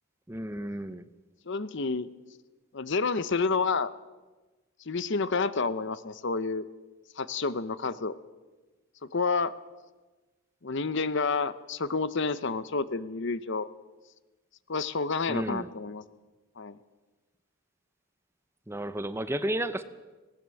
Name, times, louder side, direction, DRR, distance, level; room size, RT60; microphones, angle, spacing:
voice 1, 0.3-1.0 15.3-15.7 18.7-19.8, right 1 dB, 10° right, 12 dB, 0.7 m, -32 dB
voice 2, 1.5-2.1 2.7-3.9 4.9-6.7 7.2-8.1 9.1-9.5 10.6-13.7 14.7-16.0 16.6-16.8, left 4 dB, 55° left, 15 dB, 0.8 m, -29 dB
19.5 x 17.5 x 7.7 m, 1.2 s
head